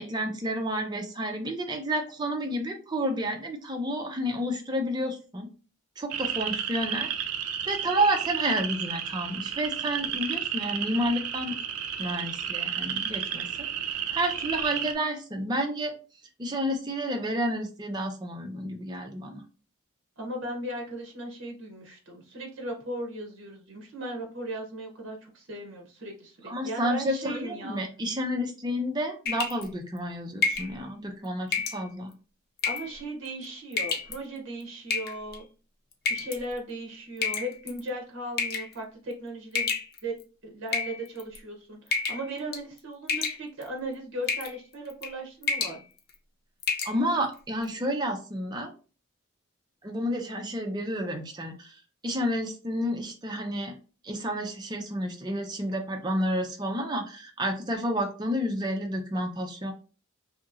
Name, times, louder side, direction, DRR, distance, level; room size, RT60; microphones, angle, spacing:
voice 1, 0.0-5.5 6.0-7.1 7.7-11.6 12.0-15.9 16.4-19.4 26.5-32.1 46.8-48.7 49.8-51.7 52.0-53.8 54.0-59.7, equal, 20° right, 3 dB, 0.4 m, -30 dB
sound 1, 6.1-14.9, right 9 dB, 85° right, 0.4 m, -32 dB
voice 2, 20.2-27.8 32.6-35.5 36.1-39.7 40.0-40.1 40.4-45.8, right 1 dB, 55° right, 2 dB, 0.7 m, -37 dB
sound 2, 29.3-29.7 30.4-30.7 31.5-31.8 32.6-32.9 33.7-34.1 34.9-35.4 36.1-36.4 37.2-37.8 38.4-38.7 39.5-40.2 40.7-41.4 41.9-42.3 42.5-42.8 43.1-43.7 44.3-44.5 44.9-45.1 45.4-45.8 46.1-46.2 46.6-46.9, left 5 dB, 45° left, 0.4 m, -29 dB
2.8 x 2.7 x 2.5 m, 0.36 s
head